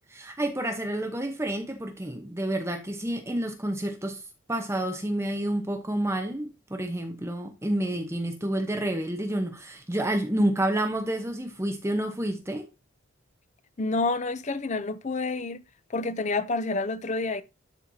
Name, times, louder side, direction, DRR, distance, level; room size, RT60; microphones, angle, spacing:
voice 1, 0.1-4.2 4.5-12.7, right 1 dB, 15° right, 0.9 m, -29 dB
voice 2, 13.8-15.6 15.9-17.4, left 3 dB, 35° left, 0.5 m, -28 dB
12.0 x 4.4 x 2.7 m
head